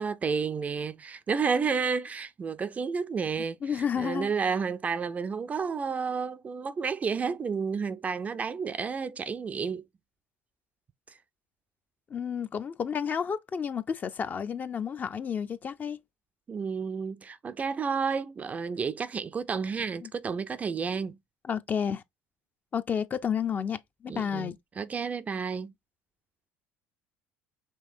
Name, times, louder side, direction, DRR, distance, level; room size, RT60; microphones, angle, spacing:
voice 1, 0.0-9.8 16.5-21.2 24.1-25.7, right 5 dB, 30° right, 0.4 m, -31 dB
voice 2, 3.6-4.3 12.1-16.0 20.0-20.1 21.5-22.0 22.7-24.6, left 7 dB, 35° left, 0.5 m, -31 dB
5.4 x 3.3 x 2.5 m
supercardioid pair, 100°, 5 cm